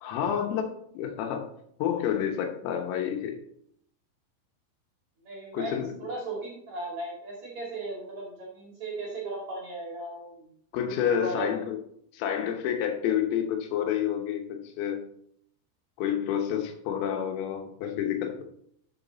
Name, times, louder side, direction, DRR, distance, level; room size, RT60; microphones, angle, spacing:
voice 1, 0.0-1.5 1.8-3.4 5.5-5.9 10.7-11.8 12.1-15.1 16.0-18.4, left 9 dB, 85° left, 4 dB, 3.8 m, -29 dB
voice 2, 5.2-11.6 17.0-17.1, right 2 dB, 45° right, -4 dB, 2.8 m, -37 dB
12.0 x 7.0 x 4.0 m, 0.70 s
omnidirectional pair, 5.9 m